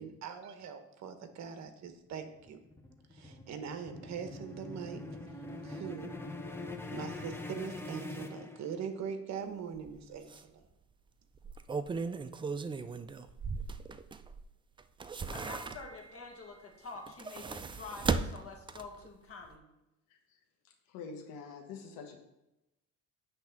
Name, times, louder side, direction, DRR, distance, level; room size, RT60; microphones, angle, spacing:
voice 1, 0.0-2.6 3.1-5.0 5.6-6.1 6.9-10.6, right 7 dB, 55° right, 8 dB, 1.0 m, -42 dB
sound 1, 1.9-9.1, left 1 dB, 5° left, 0.8 m, -43 dB
sound 2, 9.8-9.9 10.3-10.4 11.3-14.4 14.8-16.1 17.0-19.1 19.4-19.5, right 4 dB, 15° right, 0.3 m, -37 dB
voice 2, 15.3-19.6, left 3 dB, 45° left, 1 dB, 1.8 m, -47 dB
voice 3, 20.6-22.2, left 5 dB, 90° left, 1 dB, 1.2 m, -46 dB
8.1 x 3.5 x 5.8 m, 0.92 s
cardioid pair, 100°, 33 cm